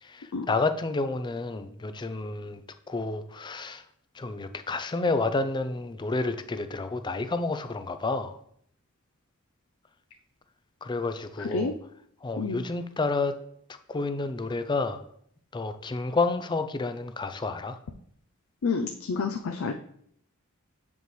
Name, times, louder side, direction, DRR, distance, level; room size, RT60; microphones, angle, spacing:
voice 1, 0.0-2.6 2.9-3.8 4.1-8.4 10.8-11.7 12.2-13.4 13.9-15.0 15.5-17.8, left 3 dB, 20° left, 10 dB, 0.4 m, -30 dB
voice 2, 11.4-11.7 12.4-12.6 18.6-19.7, left 4 dB, 75° left, 5 dB, 0.5 m, -29 dB
7.5 x 5.3 x 3.2 m, 0.68 s
head